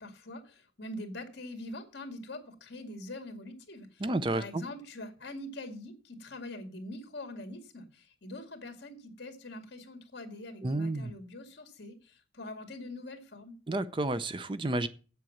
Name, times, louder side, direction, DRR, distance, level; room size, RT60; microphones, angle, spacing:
voice 1, 0.0-4.0 4.3-13.6, left 1 dB, 55° left, 2.1 m, -44 dB
voice 2, 4.0-4.6 10.6-11.1 13.7-14.9, right 2 dB, 25° right, 0.5 m, -31 dB
8.2 x 7.7 x 7.2 m
head